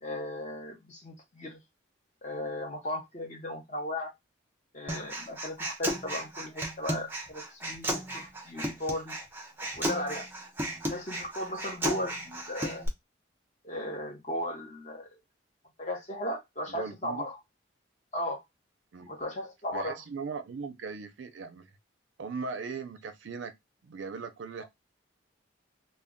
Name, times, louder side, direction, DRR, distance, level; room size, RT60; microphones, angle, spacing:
voice 1, 0.0-1.6 2.2-4.1 4.7-9.1 9.8-10.3 10.9-12.9 13.6-15.2 15.8-17.4 18.1-18.4 19.0-20.0, left 1 dB, 35° left, 0.7 m, -36 dB
Human voice, 4.9-12.9, right 1 dB, 10° right, 0.4 m, -34 dB
voice 2, 16.7-17.3 18.9-19.1 19.7-21.7 22.2-23.5 23.8-24.6, right 4 dB, 70° right, 0.4 m, -39 dB
2.1 x 2.1 x 3.5 m
head